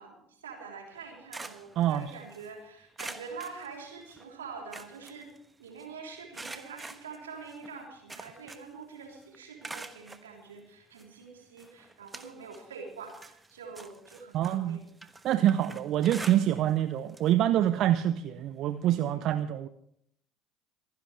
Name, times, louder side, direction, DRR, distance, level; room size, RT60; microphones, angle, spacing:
voice 1, 0.0-5.3 5.6-14.8 19.1-19.3, right 5 dB, 80° right, 0 dB, 3.4 m, -45 dB
sound 1, 0.9-2.5 3.0-4.2 4.5-5.8 6.3-8.8 9.1-10.3 11.0-11.1 11.6-12.7 13.0-16.8 17.1-17.3 17.7-17.8 19.0-19.1, right 3 dB, 15° right, 1.2 m, -46 dB
voice 2, 14.3-14.8 15.2-19.7, right 12 dB, 55° right, 11 dB, 0.6 m, -26 dB
26.0 x 11.0 x 3.3 m, 0.72 s
figure-of-eight pair, 60°, 0 cm